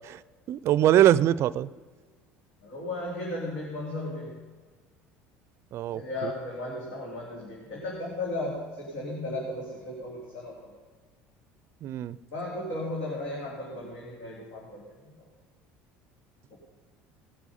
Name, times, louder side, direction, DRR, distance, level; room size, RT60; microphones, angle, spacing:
voice 1, 0.5-1.7 5.7-6.3 11.8-12.2, right 12 dB, 50° right, 18 dB, 0.4 m, -22 dB
voice 2, 2.6-4.4 5.9-10.7 12.3-15.3 16.5-16.6, left 1 dB, 80° left, -3 dB, 3.0 m, -35 dB
18.5 x 6.3 x 5.5 m, 1.4 s
supercardioid pair, 95°, 6 cm